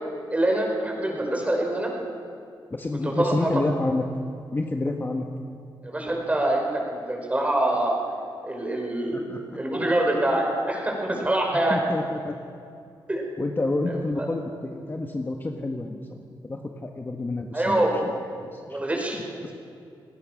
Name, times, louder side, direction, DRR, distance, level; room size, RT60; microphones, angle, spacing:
voice 1, 0.3-1.9 3.0-3.5 5.8-8.0 8.4-9.3 9.5-11.8 13.1-13.2 14.2-14.3 17.5-18.0 18.7-19.5, right 1 dB, 15° right, 0 dB, 5.3 m, -25 dB
voice 2, 2.7-4.0 4.5-5.3 9.1-9.6 11.2-11.3 11.7-12.4 13.4-16.2 16.4-18.1 18.4-18.8 19.1-19.3, left 2 dB, 25° left, 3 dB, 1.4 m, -29 dB
28.0 x 19.5 x 6.4 m, 2.4 s
wide cardioid pair, 130°, 9 cm